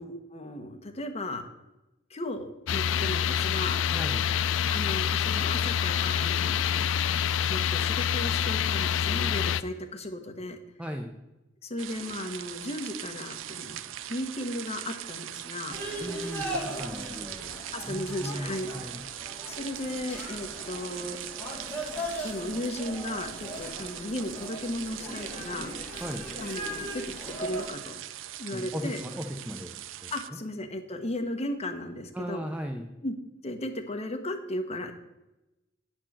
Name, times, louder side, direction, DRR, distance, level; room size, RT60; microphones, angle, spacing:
voice 1, 0.0-1.4 2.1-3.8 4.7-6.9 7.5-10.6 11.6-13.8 14.1-15.8 17.7-18.7 19.5-21.2 22.2-25.7 26.4-27.0 27.4-28.0 28.4-29.0 30.1-32.4 33.0-33.1 33.4-34.9, left 1 dB, 35° left, 5 dB, 1.0 m, -35 dB
sound 1, 2.7-9.6, left 8 dB, 70° left, 0.3 m, -26 dB
voice 2, 3.9-4.3 10.8-11.1 16.0-17.5 17.8-19.0 26.0-26.3 28.5-29.7 30.0-30.4 32.1-32.9, equal, 5° right, 3 dB, 0.6 m, -37 dB
sound 2, 11.8-30.3, right 12 dB, 90° right, 0.4 m, -41 dB
sound 3, 15.7-27.7, equal, 10° left, 2.1 m, -39 dB
9.1 x 4.5 x 7.3 m, 0.97 s
head